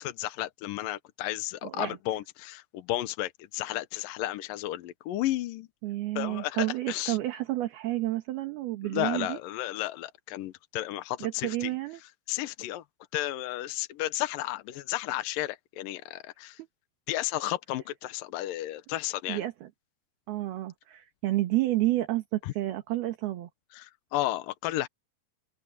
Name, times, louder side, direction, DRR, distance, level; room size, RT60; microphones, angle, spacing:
voice 1, 0.0-5.7 6.2-7.2 8.8-11.7 12.3-12.8 13.1-16.6 17.1-19.4 22.4-22.5 23.7-24.9, left 15 dB, 70° left, 2.2 m, -33 dB
voice 2, 1.6-2.0 5.8-9.4 11.2-12.0 16.6-16.7 19.3-19.7 20.3-23.5, right 16 dB, 70° right, 3.3 m, -30 dB
omnidirectional pair, 4.8 m